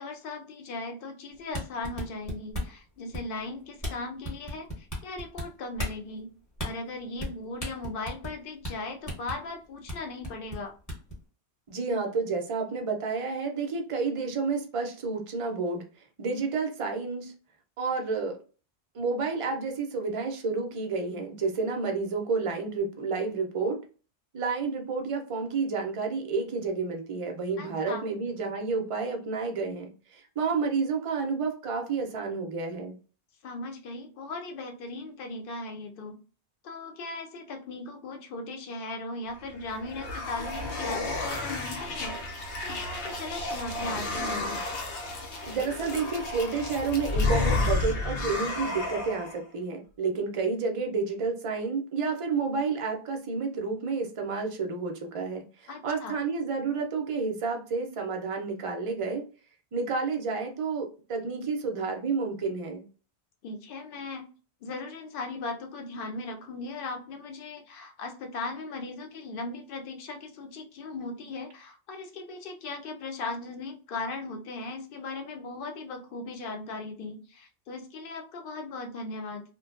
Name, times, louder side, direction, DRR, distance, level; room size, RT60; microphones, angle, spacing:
voice 1, 0.0-6.3 6.6-10.7 27.6-28.1 33.4-36.1 36.6-44.5 55.7-56.1 63.4-64.3 64.6-79.4, left 3 dB, 60° left, 4 dB, 0.7 m, -38 dB
sound 1, 1.4-2.8 3.1-3.5 3.8-3.9 4.2-5.4 5.8-6.0 6.6-6.7 7.2-7.3 7.6-8.4 8.6-8.7 9.1-9.4 9.9-10.0 10.2-11.1, equal, 20° left, 0.9 m, -34 dB
voice 2, 11.7-15.8 16.2-17.3 17.8-18.4 18.9-23.8 24.3-32.9 45.5-59.2 59.7-62.8, right 4 dB, 50° right, 3 dB, 0.4 m, -30 dB
sound 2, 39.4-49.4, left 2 dB, 90° left, 0.9 m, -31 dB
2.5 x 2.2 x 2.4 m, 0.37 s
omnidirectional pair, 1.1 m